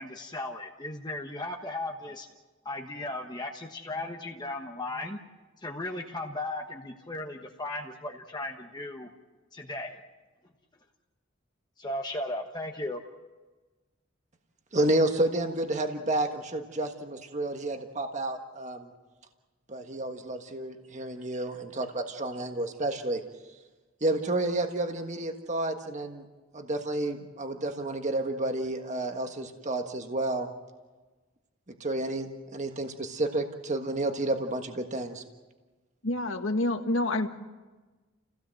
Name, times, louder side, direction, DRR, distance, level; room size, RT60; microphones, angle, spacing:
voice 1, 0.0-2.3 2.6-5.2 5.6-9.1 9.5-10.0 11.8-13.0, left 2 dB, 20° left, 2 dB, 1.2 m, -36 dB
voice 2, 14.7-18.9 19.7-23.2 24.0-26.2 26.5-30.5 31.8-35.2, right 2 dB, 35° right, 5 dB, 1.5 m, -30 dB
voice 3, 36.0-37.3, left 2 dB, 70° left, 6 dB, 1.7 m, -27 dB
29.5 x 16.5 x 7.7 m, 1.3 s
head